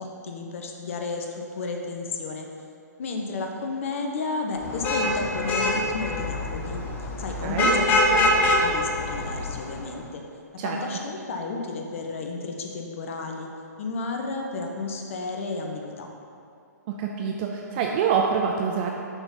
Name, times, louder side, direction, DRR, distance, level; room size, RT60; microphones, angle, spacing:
voice 1, 0.0-2.5 3.0-6.8 7.2-10.2 10.5-13.5 13.8-16.1, left 3 dB, 45° left, 2 dB, 0.8 m, -32 dB
Vehicle horn car horn honking / Traffic noise roadway noise, 4.6-9.9, left 1 dB, 20° left, 0.6 m, -24 dB
voice 2, 7.4-7.7 10.6-10.8 16.9-18.9, right 6 dB, 30° right, 0 dB, 0.4 m, -26 dB
6.1 x 3.9 x 5.2 m, 2.4 s
figure-of-eight pair, 125°, 10 cm